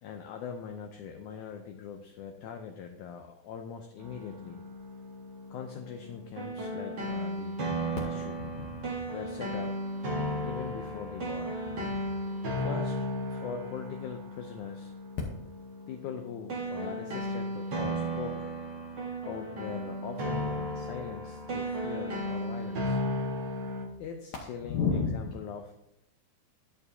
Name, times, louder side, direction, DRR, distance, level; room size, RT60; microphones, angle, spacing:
voice 1, 0.0-4.7 5.5-7.6 8.0-8.4 9.1-9.7 10.4-11.6 12.5-14.9 15.9-18.5 19.3-23.0 24.0-25.7, left 7 dB, 85° left, 4 dB, 1.7 m, -41 dB
sound 1, 4.0-23.8, equal, 60° right, 1.1 m, -35 dB
voice 2, 8.4-9.1 11.7-12.1 24.7-25.3, left 5 dB, 65° left, -2 dB, 1.9 m, -32 dB
13.0 x 6.8 x 2.7 m, 0.82 s
omnidirectional pair, 4.2 m